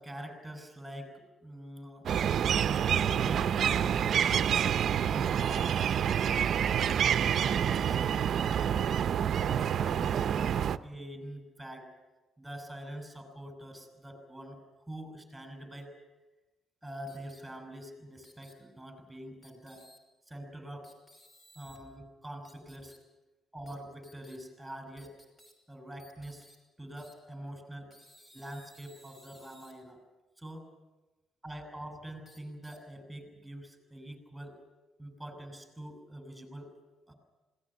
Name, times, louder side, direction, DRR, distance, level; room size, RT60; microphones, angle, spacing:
voice 1, 0.0-2.1 2.7-6.6 7.2-8.8 9.4-11.9 12.4-15.9 16.8-19.9 20.3-20.9 21.6-23.0 23.5-25.1 25.7-26.5 26.8-27.9 28.3-30.0 30.4-30.7 31.4-34.6 35.0-36.7 37.1-37.2, right 1 dB, 5° right, 8 dB, 6.1 m, -45 dB
sound 1, 2.1-10.8, right 8 dB, 60° right, 0.7 m, -27 dB
sound 2, 17.1-17.4 18.2-18.5 19.4-20.0 20.8-21.8 22.4-23.0 23.7-23.8 24.0-24.4 25.0-25.5 26.0-26.6 27.0-27.1 27.9-29.7 32.2-32.8, equal, 25° left, 5.7 m, -58 dB
21.0 x 18.0 x 9.8 m, 1.1 s
cardioid pair, 90°, 0 cm